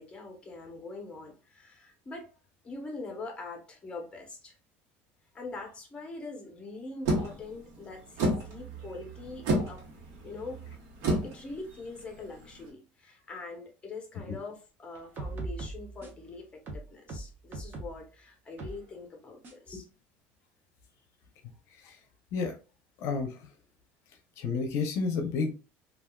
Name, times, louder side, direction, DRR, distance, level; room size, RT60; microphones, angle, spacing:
voice 1, 0.0-2.3 2.6-4.5 5.3-9.8 10.2-10.6 11.1-19.9, left 3 dB, 20° left, 0.9 m, -43 dB
sound 1, 7.1-12.7, right 1 dB, 70° right, 1.1 m, -32 dB
sound 2, 15.0-16.3 16.7-18.0 18.6-18.8 19.4-19.5, right 2 dB, 35° right, 0.8 m, -39 dB
voice 2, 23.0-23.4 24.4-25.5, left 4 dB, 55° left, 0.6 m, -30 dB
3.4 x 2.4 x 2.3 m
cardioid pair, 140°, 6 cm